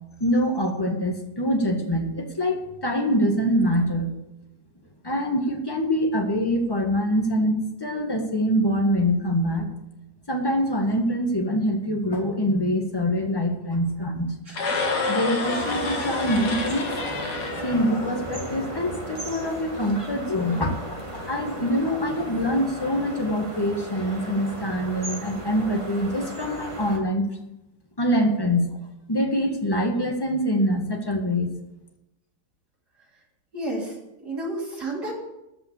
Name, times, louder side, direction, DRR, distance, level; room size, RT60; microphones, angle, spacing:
voice 1, 0.2-4.1 5.0-9.7 10.3-14.3 15.1-17.0 17.6-27.3 28.0-28.7 29.1-31.5, equal, 15° left, 3 dB, 1.6 m, -24 dB
sound 1, 14.5-18.7, left 3 dB, 65° left, 2.3 m, -29 dB
sound 2, 15.4-27.0, right 1 dB, 15° right, 1.9 m, -36 dB
voice 2, 33.5-33.9 34.2-35.1, right 1 dB, 60° right, -5 dB, 3.7 m, -30 dB
14.0 x 5.8 x 8.5 m, 0.93 s
omnidirectional pair, 1.9 m